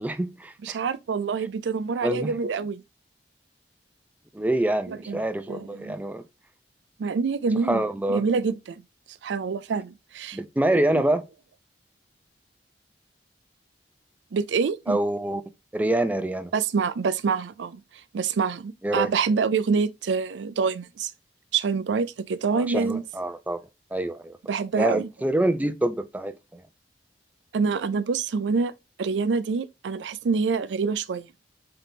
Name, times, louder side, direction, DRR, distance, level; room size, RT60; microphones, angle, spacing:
voice 1, 0.0-0.8 2.0-2.3 4.3-6.2 7.6-8.2 10.3-11.2 14.9-15.4 15.7-16.5 18.8-19.1 22.5-23.6 23.9-24.4 24.7-26.6, right 1 dB, 10° right, 0.4 m, -26 dB
voice 2, 0.6-2.8 4.9-5.2 5.5-6.0 7.0-7.8 8.1-8.8 9.1-10.4 14.3-15.0 16.5-17.8 18.1-21.1 21.5-23.0 24.5-25.1 27.5-28.7 29.0-31.3, right 5 dB, 85° right, 0.4 m, -26 dB
3.9 x 3.5 x 2.7 m
head